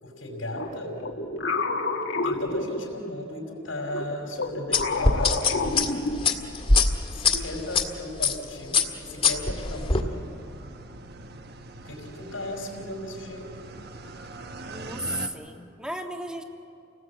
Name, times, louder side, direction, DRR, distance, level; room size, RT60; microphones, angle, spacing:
voice 1, 0.0-1.0 2.2-5.9 7.1-10.3 11.8-13.5, left 1 dB, 90° left, 1 dB, 5.3 m, -36 dB
sound 1, 0.5-3.3 3.9-6.6, left 3 dB, 70° left, 1.7 m, -30 dB
sound 2, 4.7-7.8 8.2-8.4 8.7-10.0, left 4 dB, 30° left, 1.9 m, -22 dB
sound 3, 9.5-15.3, right 2 dB, 55° right, 1.2 m, -42 dB
voice 2, 14.7-16.4, right 1 dB, 5° right, 4 dB, 1.6 m, -34 dB
29.5 x 19.5 x 8.6 m, 2.6 s
head